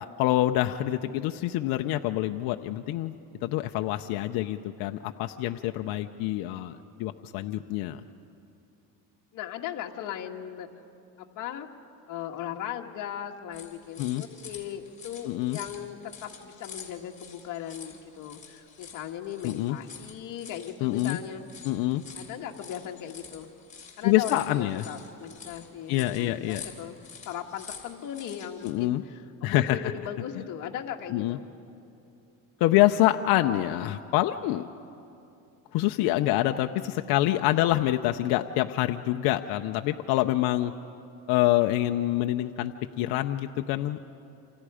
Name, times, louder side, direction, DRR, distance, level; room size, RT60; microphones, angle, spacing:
voice 1, 0.0-3.1 3.4-8.0 14.0-14.2 15.3-15.6 19.4-19.8 20.8-21.2 21.6-22.0 24.0-24.8 25.9-26.6 28.6-29.0 29.4-29.8 31.1-31.4 32.6-34.6 35.7-40.7 41.3-42.7 43.0-44.0, left 15 dB, 75° left, 6 dB, 0.7 m, -26 dB
voice 2, 9.3-10.7 11.2-11.7 12.1-21.5 22.2-23.5 24.0-27.0 27.3-31.5, left 10 dB, 55° left, 2 dB, 1.8 m, -38 dB
sound 1, 13.5-28.7, left 6 dB, 20° left, 3.5 m, -47 dB
28.0 x 27.5 x 5.0 m, 2.6 s
cardioid pair, 135°, 37 cm